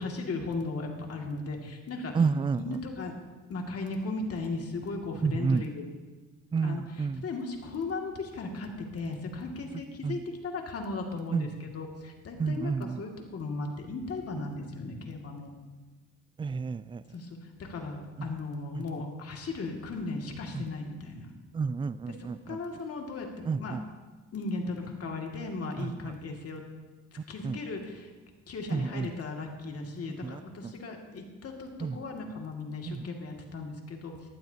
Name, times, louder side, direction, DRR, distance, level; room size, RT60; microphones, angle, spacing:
voice 1, 0.0-2.1 2.6-3.1 3.5-5.9 6.6-15.5 17.1-21.3 22.1-23.8 24.3-26.6 27.3-28.1 28.5-34.3, left 3 dB, 50° left, 1 dB, 2.3 m, -37 dB
voice 2, 2.1-2.6 5.2-5.6 6.5-7.2 10.0-10.2 11.3-11.4 12.4-13.0 16.4-17.0 20.5-20.6 21.5-22.6 23.5-23.8 25.8-25.9 27.4-27.6 28.7-29.1 30.2-30.7 31.8-32.0 32.9-33.0, right 5 dB, 15° right, 17 dB, 0.3 m, -30 dB
18.5 x 12.0 x 2.9 m, 1.3 s
cardioid pair, 90°, 30 cm